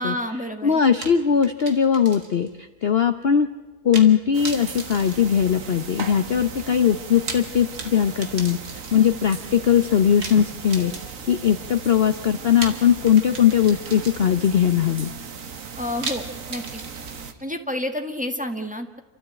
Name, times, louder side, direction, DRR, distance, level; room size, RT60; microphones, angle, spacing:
voice 1, 0.0-0.8 15.8-16.8 17.4-19.0, left 1 dB, 5° right, 5 dB, 1.5 m, -29 dB
voice 2, 0.6-3.5 3.8-8.6 8.9-10.9 11.3-15.1, left 8 dB, 50° left, 9 dB, 0.9 m, -20 dB
sound 1, 1.0-2.5 2.8-2.9 3.9-4.2 4.4-6.0 7.0-9.2 10.2-11.4 12.6-14.5 16.0-17.4, right 3 dB, 85° right, 2.7 m, -36 dB
sound 2, 4.3-17.3, right 5 dB, 60° right, 1.7 m, -37 dB
29.0 x 13.5 x 8.8 m, 1.3 s
omnidirectional pair, 1.6 m